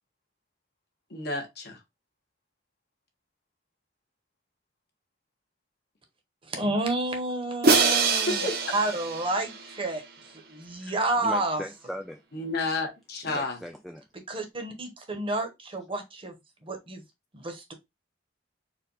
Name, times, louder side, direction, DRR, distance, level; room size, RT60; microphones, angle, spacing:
voice 1, 1.1-1.8 8.3-8.8 10.8-11.0 12.3-13.6, left 2 dB, 55° left, 1.4 m, -31 dB
voice 2, 6.4-11.6 14.3-16.3 16.6-17.0 17.3-17.7, right 2 dB, 30° right, 1.0 m, -30 dB
Crash cymbal, 7.6-9.8, right 4 dB, 55° right, 0.9 m, -24 dB
voice 3, 11.2-12.2 13.2-14.0, equal, ahead, 0.3 m, -38 dB
4.4 x 2.5 x 4.0 m
head